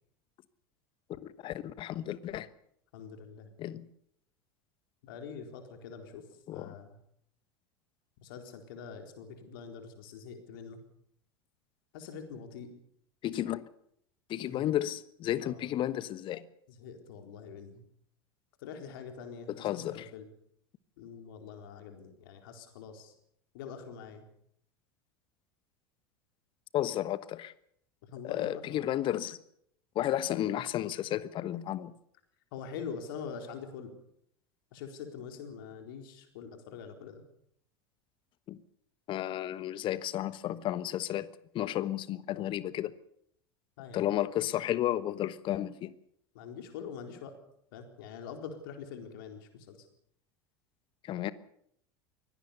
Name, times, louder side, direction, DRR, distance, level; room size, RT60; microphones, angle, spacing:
voice 1, 1.2-2.5 3.6-3.9 6.5-6.7 13.2-13.6 14.3-16.4 19.5-20.1 26.7-27.5 28.2-29.4 29.9-31.9 38.5-38.6 39.1-41.3 41.5-42.9 43.9-45.9 51.1-51.3, left 12 dB, 40° left, 1.2 m, -32 dB
voice 2, 2.9-3.5 5.0-6.2 6.5-7.0 8.2-10.8 11.9-12.7 14.4-14.7 15.4-15.7 16.8-17.8 18.6-20.3 21.0-23.1 23.5-24.2 28.1-28.9 32.5-33.9 34.7-37.2 43.8-44.1 46.3-47.3 47.7-49.8, left 6 dB, 60° left, 4.1 m, -44 dB
23.5 x 17.5 x 7.0 m
figure-of-eight pair, 75°, 13 cm